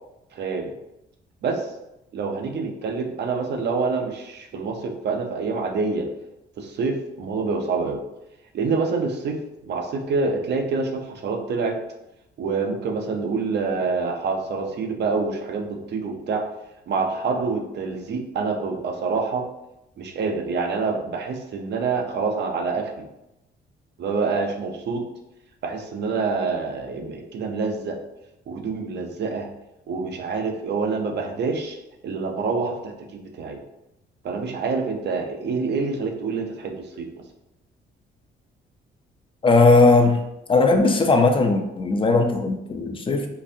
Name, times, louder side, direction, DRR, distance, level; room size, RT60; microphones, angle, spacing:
voice 1, 0.4-0.7 1.4-1.7 2.1-6.1 6.6-8.0 8.5-9.4 9.6-11.8 12.4-16.4 16.9-19.4 20.0-23.1 24.0-25.1 25.6-28.0 28.5-29.5 29.9-31.8 32.0-33.6 34.2-37.1, right 4 dB, 60° right, 4 dB, 0.6 m, -26 dB
voice 2, 39.4-40.2 40.5-43.3, left 3 dB, 25° left, 5 dB, 0.5 m, -18 dB
3.8 x 2.6 x 2.7 m, 0.91 s
cardioid pair, 90°, 20 cm